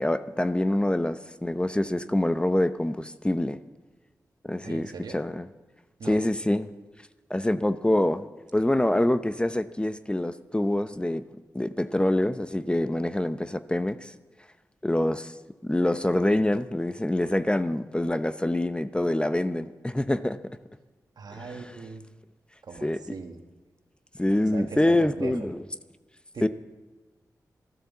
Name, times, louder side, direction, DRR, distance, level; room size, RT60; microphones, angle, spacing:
voice 1, 0.0-3.6 4.4-5.5 6.0-6.7 7.3-8.3 8.5-11.2 11.5-14.1 14.8-15.3 15.6-20.4 21.3-21.6 22.8-23.0 24.2-25.6 26.4-26.5, left 1 dB, 15° left, 12 dB, 0.7 m, -25 dB
voice 2, 4.6-5.2 6.0-6.2 21.2-22.0 22.6-23.4 24.5-25.5 26.3-26.5, right 5 dB, 75° right, 5 dB, 1.4 m, -39 dB
13.0 x 12.0 x 7.2 m, 1.2 s
cardioid pair, 45°, 7 cm